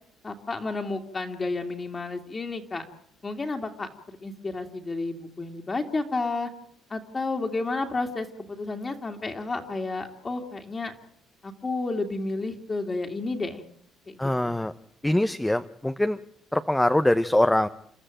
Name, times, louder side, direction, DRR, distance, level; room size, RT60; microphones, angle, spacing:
voice 1, 0.2-2.8 3.2-6.5 6.9-10.9 11.4-13.6 14.1-14.5, left 3 dB, 25° left, 3 dB, 2.5 m, -31 dB
voice 2, 14.2-14.7 15.0-16.2 16.5-17.7, left 1 dB, 5° left, 9 dB, 0.9 m, -23 dB
29.0 x 13.0 x 9.1 m, 0.67 s
cardioid pair, 100°, 0 cm